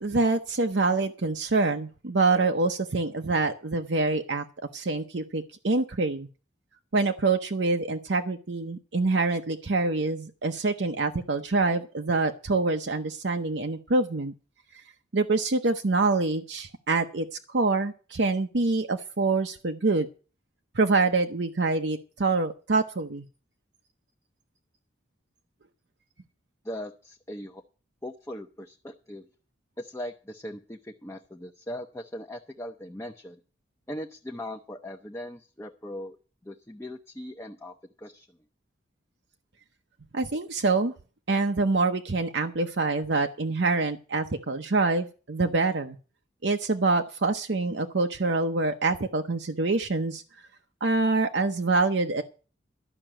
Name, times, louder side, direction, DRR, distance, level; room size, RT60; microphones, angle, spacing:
voice 1, 0.0-4.4 4.7-6.3 6.9-14.3 15.1-20.1 20.7-23.2 40.1-40.9 41.3-46.0 46.4-50.2 50.8-52.2, right 3 dB, 65° right, 5 dB, 0.8 m, -26 dB
voice 2, 26.6-27.6 28.0-29.3 29.8-33.4 33.9-36.2 36.4-38.3, left 1 dB, 15° left, 3 dB, 0.7 m, -39 dB
12.0 x 5.9 x 8.8 m, 0.37 s
head